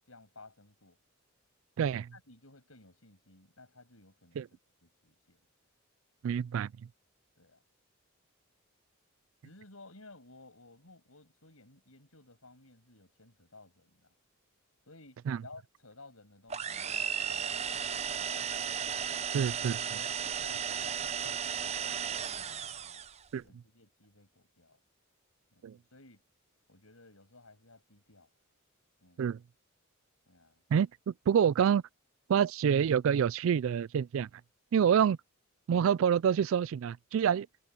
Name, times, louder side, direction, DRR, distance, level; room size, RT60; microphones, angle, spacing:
voice 1, 0.1-1.0 1.8-5.5 7.4-7.6 9.4-14.1 14.9-17.0 17.3-18.5 20.2-23.1 23.4-24.8 25.5-26.2 26.7-28.3 29.0-29.3 30.3-30.6, left 2 dB, 80° left, 7.7 m, -56 dB
voice 2, 6.2-6.7 15.3-15.4 19.3-20.0 23.3-23.4 25.6-25.8 29.2-29.4 30.7-31.8 32.3-34.3 34.7-35.2 35.7-37.5, right 8 dB, 70° right, 0.3 m, -27 dB
sound 1, 16.5-23.2, right 7 dB, 30° right, 0.7 m, -35 dB
head